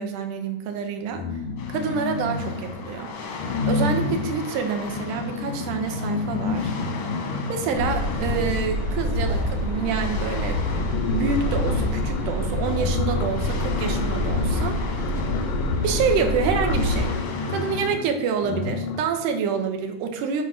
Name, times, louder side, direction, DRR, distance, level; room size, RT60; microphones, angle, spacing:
voice 1, 0.0-1.4 1.7-3.4 3.7-6.7 7.5-14.8 15.8-17.1 17.5-20.4, right 6 dB, 85° right, 5 dB, 2.3 m, -27 dB
sound 1, 1.1-2.9 3.4-9.1 10.0-10.1 10.4-19.2, left 4 dB, 85° left, 2.1 m, -30 dB
sound 2, 1.6-17.9, left 4 dB, 70° left, 1.2 m, -36 dB
sound 3, 7.8-17.1, left 1 dB, 55° right, 1.7 m, -26 dB
8.0 x 2.7 x 6.1 m, 0.83 s
omnidirectional pair, 3.6 m